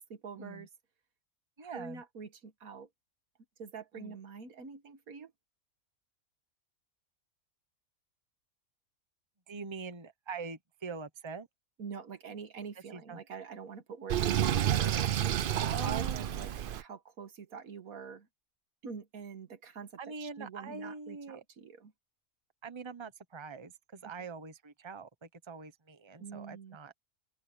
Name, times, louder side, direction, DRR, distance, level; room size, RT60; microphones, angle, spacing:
voice 1, 0.1-0.7 1.6-2.9 3.6-5.3 11.8-15.1 15.6-16.5 16.8-18.3 18.8-21.9 26.2-26.8, right 6 dB, 90° right, 1.8 m, -45 dB
voice 2, 1.6-2.0 3.9-4.1 9.5-11.5 12.9-13.2 15.6-16.7 20.0-21.4 22.6-26.9, right 4 dB, 20° right, 1.1 m, -44 dB
Sink (filling or washing), 14.1-16.8, right 10 dB, 60° right, 0.5 m, -29 dB
open air
omnidirectional pair, 1.5 m